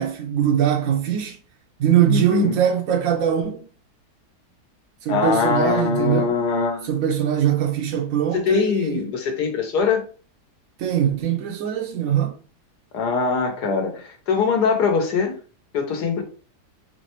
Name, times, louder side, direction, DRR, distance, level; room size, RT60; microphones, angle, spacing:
voice 1, 0.0-1.4 1.8-3.7 5.0-6.3 6.8-9.0 10.8-12.4, right 9 dB, 70° right, 0.9 m, -22 dB
voice 2, 2.1-2.6 5.1-6.9 8.3-10.0 12.9-15.4 15.7-16.2, left 5 dB, 75° left, 1.5 m, -22 dB
3.9 x 3.2 x 2.9 m
omnidirectional pair, 1.8 m